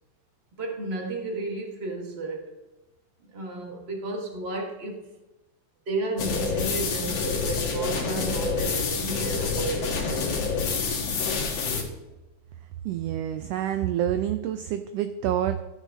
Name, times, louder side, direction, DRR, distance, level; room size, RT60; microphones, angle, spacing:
voice 1, 0.6-2.5 3.3-5.0 5.9-10.4, right 3 dB, 30° right, 1 dB, 1.3 m, -33 dB
sound 1, 6.2-11.8, left 5 dB, 60° left, 2.6 m, -27 dB
voice 2, 12.8-15.6, right 11 dB, 80° right, 9 dB, 1.4 m, -27 dB
14.0 x 8.1 x 3.6 m, 1.1 s
omnidirectional pair, 3.3 m